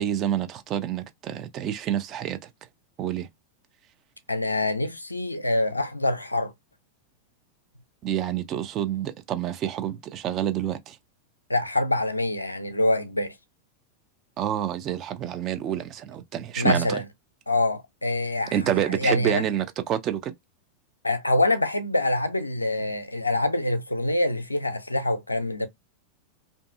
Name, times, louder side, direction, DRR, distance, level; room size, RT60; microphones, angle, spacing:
voice 1, 0.0-2.5 3.0-3.3 8.0-11.0 14.4-17.0 18.5-20.3, right 10 dB, 35° right, 0.4 m, -28 dB
voice 2, 4.3-6.5 11.5-13.3 16.6-17.0 17.5-18.6 18.9-19.4 21.0-25.7, left 1 dB, 85° left, 0.4 m, -25 dB
2.6 x 2.5 x 2.4 m
figure-of-eight pair, 90°, 0 cm